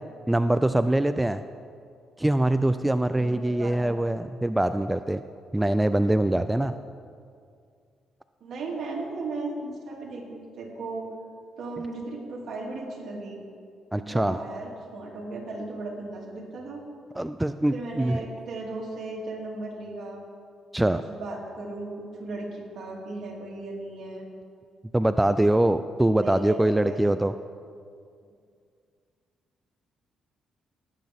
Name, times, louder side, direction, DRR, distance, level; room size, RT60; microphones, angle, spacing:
voice 1, 0.3-1.4 2.2-5.2 5.5-6.7 13.9-14.4 17.1-18.2 20.7-21.0 24.9-27.3, right 1 dB, 10° right, 11 dB, 0.3 m, -23 dB
voice 2, 3.1-4.3 8.4-11.1 11.6-13.4 13.9-16.8 17.7-20.2 21.0-24.3 26.2-27.1, right 2 dB, 65° right, -2 dB, 2.7 m, -36 dB
19.0 x 8.3 x 3.6 m, 2.3 s
cardioid pair, 90°, 0 cm